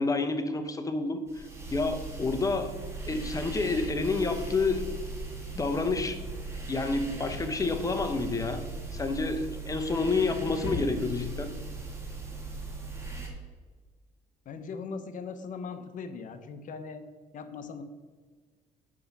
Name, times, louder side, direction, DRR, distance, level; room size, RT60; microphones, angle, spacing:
voice 1, 0.0-1.4 1.7-2.7 3.1-4.9 5.5-6.2 6.7-8.6 8.9-11.5, left 3 dB, 20° left, 7 dB, 0.8 m, -29 dB
sound 1, 1.3-13.3, right 3 dB, 15° right, 1.8 m, -38 dB
voice 2, 14.4-17.1 17.3-17.8, left 5 dB, 50° left, 9 dB, 0.8 m, -39 dB
6.2 x 5.2 x 5.9 m, 1.5 s
cardioid pair, 110°, 17 cm